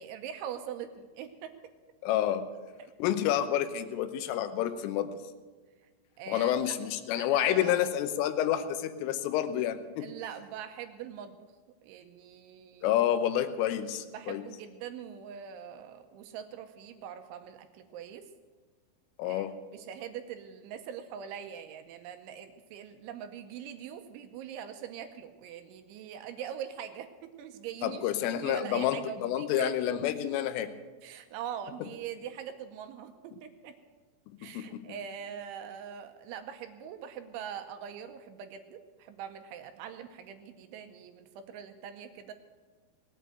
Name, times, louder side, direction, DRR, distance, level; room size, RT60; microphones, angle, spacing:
voice 1, 0.0-1.5 2.8-2.9 6.2-6.7 7.2-7.8 10.0-11.4 11.8-12.9 14.1-18.3 19.2-19.5 19.7-28.0 28.3-30.0 31.0-33.7 34.4-42.3, right 9 dB, 80° right, 7 dB, 2.9 m, -42 dB
voice 2, 2.0-2.5 3.0-5.1 6.3-10.1 12.8-14.4 19.2-19.5 27.8-30.7 34.4-34.9, left 11 dB, 80° left, 10 dB, 3.3 m, -29 dB
18.5 x 9.1 x 7.7 m, 1.4 s
omnidirectional pair, 5.9 m